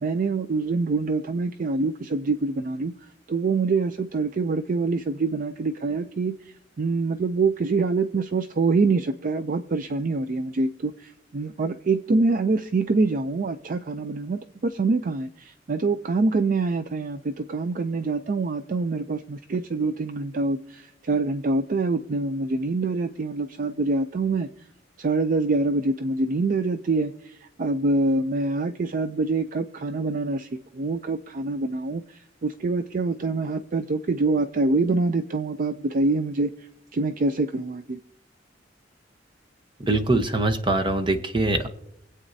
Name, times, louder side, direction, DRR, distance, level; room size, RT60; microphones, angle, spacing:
voice 1, 0.0-2.9 3.3-24.5 25.0-36.5 36.9-38.0, right 3 dB, 45° right, 10 dB, 0.4 m, -25 dB
voice 2, 39.8-41.7, right 2 dB, 25° right, 7 dB, 0.9 m, -23 dB
25.0 x 8.3 x 2.7 m, 0.78 s
head